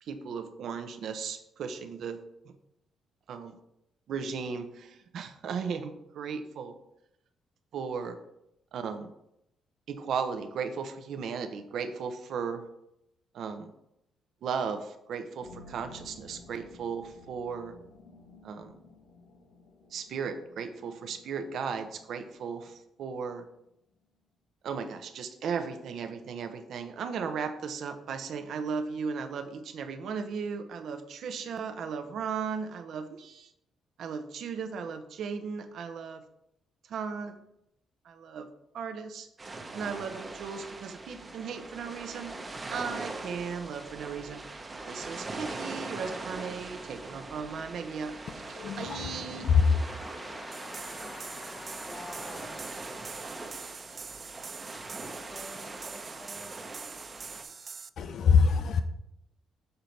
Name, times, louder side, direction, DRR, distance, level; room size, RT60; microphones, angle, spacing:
voice 1, 0.0-2.2 2.4-2.5 3.3-3.6 4.1-6.7 7.7-8.2 8.7-9.1 9.9-12.7 13.3-13.7 14.4-17.7 18.4-18.7 19.9-23.4 24.6-33.5 34.0-36.2 36.9-37.3 38.0-39.3 39.7-42.3 42.7-44.5 44.9-48.2 48.8-49.5, right 6 dB, 70° right, 0.7 m, -36 dB
sound 1, 15.4-23.9, left 2 dB, 90° left, 1.1 m, -54 dB
sound 2, 39.4-57.4, right 2 dB, 25° right, 0.8 m, -42 dB
voice 2, 48.3-49.8 58.0-58.8, left 6 dB, 65° left, 0.5 m, -24 dB
voice 3, 49.8-53.3 54.9-56.7, left 1 dB, 20° left, 0.6 m, -47 dB
sound 3, 50.5-57.9, right 5 dB, 40° right, 0.3 m, -44 dB
6.7 x 4.0 x 4.4 m
cardioid pair, 90°, 0 cm